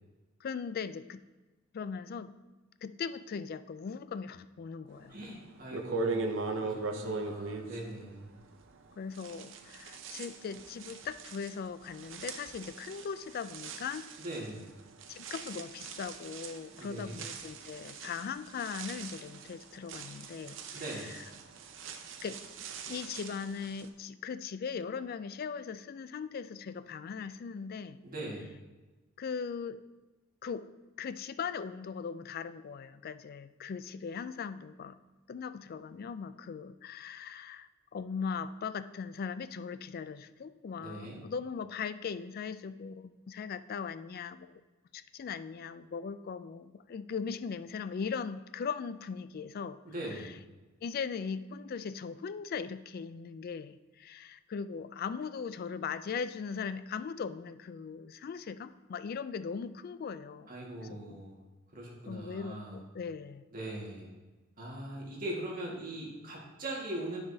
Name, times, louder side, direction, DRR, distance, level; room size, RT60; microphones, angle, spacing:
voice 1, 0.4-1.2 1.7-2.3 2.8-5.2 9.0-14.0 15.1-21.2 22.2-28.0 29.2-29.8 30.4-30.6 31.0-35.0 35.3-44.6 44.9-49.8 50.1-50.3 50.8-60.5 60.8-61.2 62.0-63.4, left 6 dB, 50° left, 13 dB, 0.3 m, -39 dB
voice 2, 5.1-8.3 14.2-14.7 16.7-17.2 20.7-21.1 28.0-28.5 40.8-41.2 49.9-50.3 60.5-61.4 61.7-62.8 63.5-64.1 64.6-67.2, right 1 dB, 45° right, -3 dB, 1.7 m, -41 dB
sound 1, 5.2-5.3 5.7-8.8 9.1-23.9, right 4 dB, 65° right, 0.7 m, -41 dB
12.5 x 4.9 x 2.8 m, 1.2 s
head